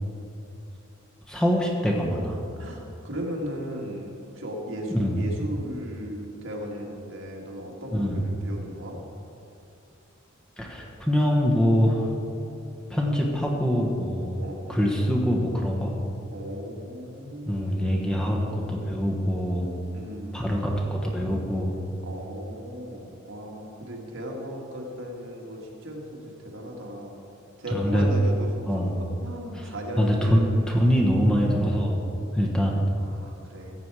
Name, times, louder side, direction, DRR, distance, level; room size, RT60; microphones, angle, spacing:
voice 1, 1.3-2.4 4.9-5.2 7.9-8.2 10.6-12.1 12.9-15.9 17.5-19.7 20.3-21.7 27.7-28.1 28.7-29.0 29.5-29.7 30.0-32.0 32.3-32.8, equal, 5° left, -2 dB, 1.2 m, -24 dB
voice 2, 2.6-9.0 14.4-14.8 16.3-18.4 19.9-20.6 22.0-27.2 27.6-30.5 33.0-33.7, equal, 65° right, -1 dB, 1.8 m, -36 dB
14.5 x 8.3 x 4.8 m, 2.7 s
head